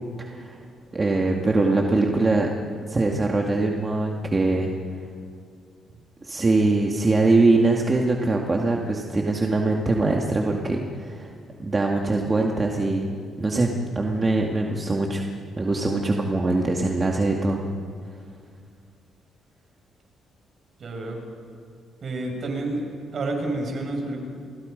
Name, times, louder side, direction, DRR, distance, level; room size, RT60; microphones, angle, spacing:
voice 1, 0.2-0.6 0.9-2.5 2.9-4.7 6.2-11.3 11.6-13.1 13.4-15.2 15.6-17.6, right 2 dB, 25° right, 0 dB, 2.2 m, -22 dB
voice 2, 20.8-21.2 22.0-22.8 23.1-24.2, right 2 dB, 50° right, 2 dB, 6.5 m, -29 dB
29.0 x 22.5 x 5.4 m, 2.2 s
cardioid pair, 90°, 0 cm